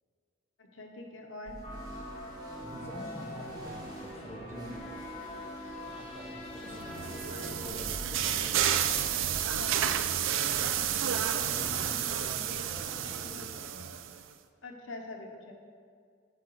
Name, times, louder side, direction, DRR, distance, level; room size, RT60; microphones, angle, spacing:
voice 1, 0.6-1.6 9.6-10.0 14.6-15.5, left 2 dB, 85° left, 2 dB, 0.8 m, -44 dB
sound 1, 1.5-12.2, equal, 25° right, 2.0 m, -50 dB
sound 2, 1.6-7.7, equal, 30° left, 1.6 m, -42 dB
voice 2, 2.6-5.2 5.8-8.9 10.3-10.5 11.3-14.0, left 1 dB, 15° left, -2 dB, 1.2 m, -46 dB
sound 3, 6.7-14.2, right 9 dB, 80° right, 0.4 m, -31 dB
9.8 x 3.8 x 6.2 m, 2.2 s
head